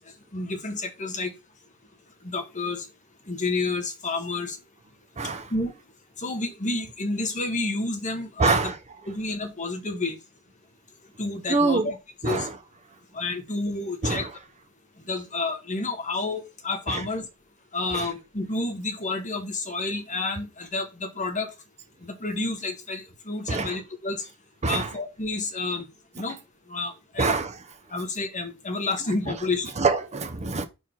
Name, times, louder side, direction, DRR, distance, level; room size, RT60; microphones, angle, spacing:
voice 1, 0.3-1.3 2.2-2.9 3.3-4.6 5.5-5.7 6.2-8.7 9.0-10.2 11.2-11.9 12.2-12.5 13.1-14.3 15.1-17.2 17.7-21.5 22.0-24.3 24.6-25.9 26.2-26.4 26.7-27.3 27.9-29.8, left 3 dB, 35° left, 1.5 m, -30 dB
voice 2, 5.2-5.5 8.4-8.8 11.5-11.9 12.2-12.6 14.0-14.3 16.9-17.1 17.9-18.1 23.5-23.8 24.6-24.9 27.2-27.6 29.3-29.4 29.8-30.7, right 3 dB, 30° right, 0.7 m, -25 dB
5.4 x 4.7 x 5.6 m
head